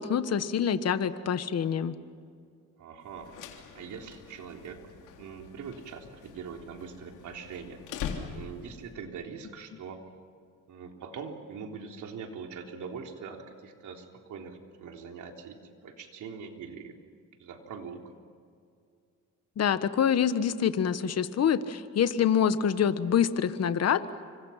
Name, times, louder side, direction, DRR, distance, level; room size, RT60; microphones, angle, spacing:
voice 1, 0.0-1.9 19.6-24.0, left 8 dB, 55° left, 11 dB, 1.4 m, -26 dB
voice 2, 2.8-3.3 3.7-4.8 5.2-7.8 8.3-10.0 10.7-16.9 17.4-18.1, right 6 dB, 75° right, 3 dB, 3.6 m, -42 dB
sound 1, 3.1-8.8, left 7 dB, 85° left, 3.3 m, -43 dB
29.0 x 25.5 x 5.9 m, 2.3 s
cardioid pair, 90°, 30 cm